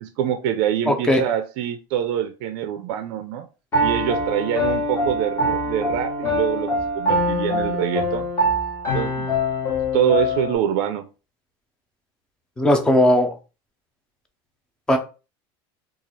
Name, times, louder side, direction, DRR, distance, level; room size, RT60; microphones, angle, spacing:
voice 1, 0.0-3.5 3.8-8.3 8.9-9.3 9.9-11.0, right 10 dB, 55° right, 9 dB, 0.4 m, -25 dB
voice 2, 0.9-1.2 12.6-13.3 14.9-15.0, left 1 dB, 5° left, 6 dB, 0.4 m, -17 dB
Piano, 3.7-10.6, left 1 dB, 20° left, 1.2 m, -23 dB
3.0 x 2.4 x 4.0 m, 0.32 s
cardioid pair, 170°, 13 cm